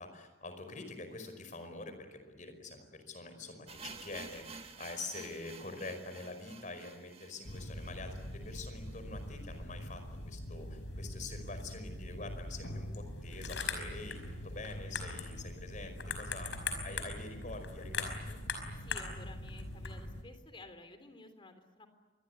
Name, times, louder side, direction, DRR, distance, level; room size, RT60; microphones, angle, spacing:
voice 1, 0.0-16.5 16.8-18.4, left 3 dB, 45° left, 8 dB, 5.1 m, -46 dB
sound 1, 3.7-9.6 9.8-9.9 10.2-10.3 10.9-11.0, right 5 dB, 35° right, 1.5 m, -52 dB
sound 2, 7.4-20.2, left 2 dB, 90° left, 5.2 m, -41 dB
voice 2, 18.8-21.9, left 2 dB, 30° left, 8 dB, 3.4 m, -53 dB
26.0 x 22.0 x 9.5 m, 1.2 s
head